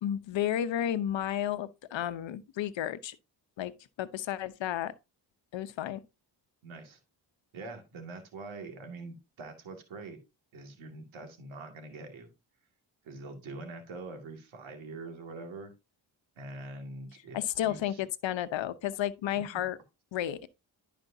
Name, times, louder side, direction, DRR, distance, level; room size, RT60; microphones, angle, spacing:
voice 1, 0.0-3.2 3.6-3.7 4.0-4.9 5.5-6.0 17.3-19.8 20.1-20.5, left 11 dB, 75° left, 0.9 m, -32 dB
voice 2, 6.6-7.0 7.5-10.2 10.5-12.3 13.0-15.7 16.4-18.0 19.5-19.6, right 3 dB, 85° right, 2.2 m, -44 dB
11.5 x 5.1 x 2.7 m
supercardioid pair, 55°, 46 cm